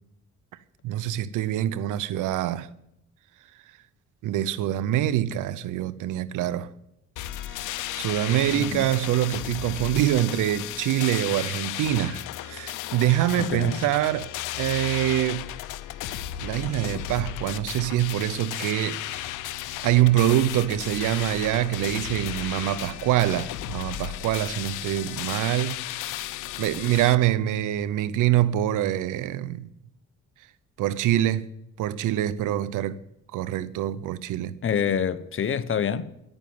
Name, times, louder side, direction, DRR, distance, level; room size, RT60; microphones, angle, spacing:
voice 1, 0.8-2.7 4.2-6.7 7.9-15.5 16.4-19.2 19.8-26.0 26.6-29.7 30.8-31.5 31.8-33.0 33.3-34.5, right 13 dB, 85° right, 0.7 m, -25 dB
sound 1, 7.2-27.2, left 13 dB, 90° left, 0.7 m, -34 dB
voice 2, 8.5-8.9 13.4-13.8 34.6-36.1, left 7 dB, 45° left, 0.9 m, -27 dB
11.0 x 9.0 x 9.3 m
cardioid pair, 90°, 30 cm